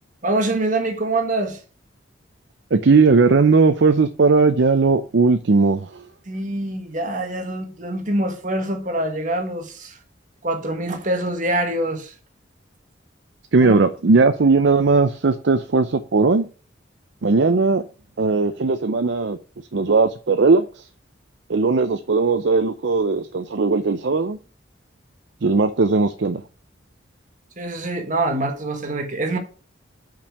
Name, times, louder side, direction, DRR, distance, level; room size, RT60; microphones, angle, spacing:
voice 1, 0.2-1.6 6.3-10.0 10.4-12.1 13.6-13.8 27.6-29.4, right 2 dB, 40° right, 1.6 m, -25 dB
voice 2, 2.7-6.0 13.5-16.5 17.2-17.8 18.2-19.4 19.7-20.9 21.5-24.4 25.4-26.4, right 4 dB, 65° right, 0.6 m, -18 dB
5.7 x 5.3 x 6.5 m
head